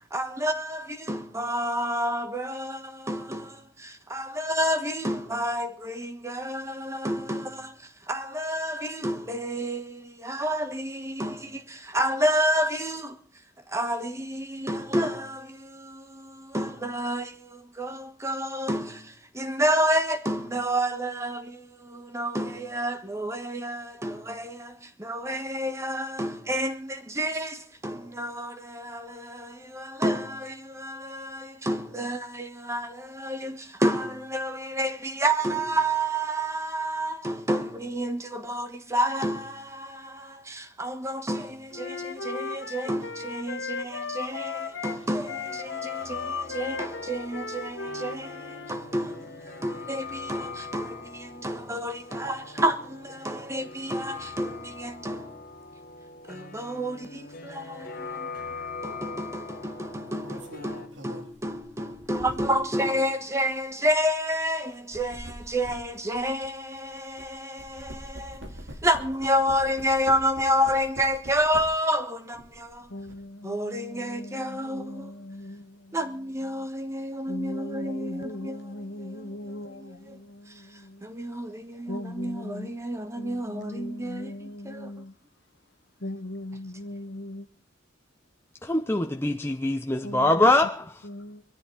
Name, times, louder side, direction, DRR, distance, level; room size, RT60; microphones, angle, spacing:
voice 1, 0.1-13.2 13.7-55.5 56.3-58.3 58.8-68.5 68.8-72.9 73.4-75.2 75.9-80.2 81.0-84.9, equal, 15° right, 1.5 m, -30 dB
Wind instrument woodwind instrument, 41.7-48.8, left 5 dB, 90° left, 1.8 m, -35 dB
sound 1, 44.7-60.9, left 4 dB, 50° left, 1.6 m, -42 dB
sound 2, 58.4-58.6 59.9-62.8 63.4-63.6 64.7-67.3 67.6-71.9 72.3-73.1, equal, 80° right, 3.3 m, -44 dB
voice 2, 72.9-76.0 76.5-76.7 77.3-81.1 81.9-82.8 83.1-85.1 86.0-87.5 90.0-90.4 91.0-91.4, left 1 dB, 65° left, 1.3 m, -39 dB
voice 3, 88.6-90.9, left 2 dB, 15° left, 0.7 m, -23 dB
23.0 x 13.5 x 4.0 m
head